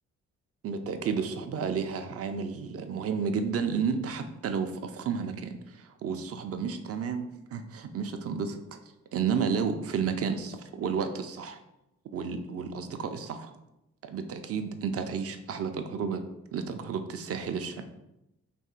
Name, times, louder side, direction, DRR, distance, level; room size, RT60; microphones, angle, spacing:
voice 1, 0.6-8.8 9.1-11.6 12.1-13.5 14.0-16.2 16.5-17.8, right 6 dB, 45° right, 8 dB, 0.5 m, -32 dB
4.2 x 3.0 x 2.4 m, 0.89 s
supercardioid pair, 45°, 33 cm